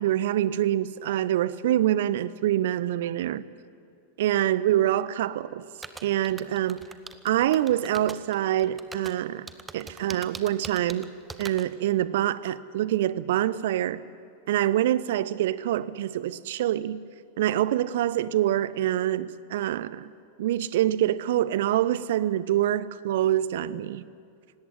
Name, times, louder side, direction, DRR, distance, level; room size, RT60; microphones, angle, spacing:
voice 1, 0.0-3.4 4.2-5.6 6.0-6.9 7.2-9.4 9.7-11.1 11.4-14.0 14.5-17.1 17.4-20.1 20.4-24.0, right 12 dB, 55° right, 0.6 m, -25 dB
sound 1, 5.8-11.7, right 3 dB, 10° right, 1.0 m, -41 dB
18.0 x 17.0 x 9.5 m
figure-of-eight pair, 90°, 0 cm